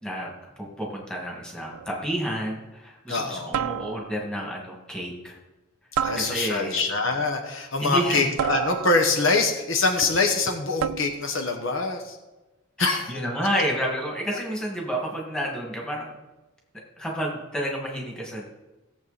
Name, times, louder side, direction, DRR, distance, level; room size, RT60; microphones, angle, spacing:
voice 1, 0.0-5.4 6.2-6.9 7.8-8.3 12.8-16.2 17.0-18.4, equal, 5° left, -2 dB, 2.2 m, -30 dB
sound 1, 1.7-2.1 3.5-4.3 6.0-6.8 8.4-9.3 10.8-11.4, right 9 dB, 90° right, 0.4 m, -30 dB
voice 2, 3.1-3.6 6.0-12.2 12.8-13.2, left 3 dB, 60° left, 4 dB, 1.2 m, -24 dB
16.5 x 7.5 x 4.2 m, 1.1 s
head